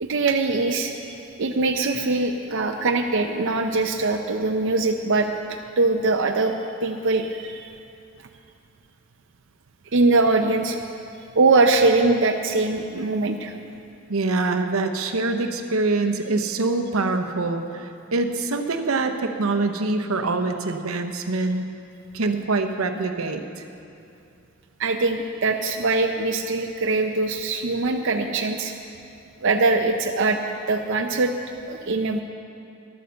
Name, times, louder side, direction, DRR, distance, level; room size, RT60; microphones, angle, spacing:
voice 1, 0.0-5.3 5.8-6.5 6.8-7.7 9.9-10.8 11.4-13.5 24.8-28.7 29.4-30.4 30.7-31.3 31.7-32.2, right 3 dB, 60° right, 4 dB, 0.6 m, -22 dB
voice 2, 14.1-21.6 22.1-23.4, right 3 dB, 90° right, 7 dB, 0.8 m, -24 dB
12.0 x 9.4 x 6.8 m, 2.6 s
head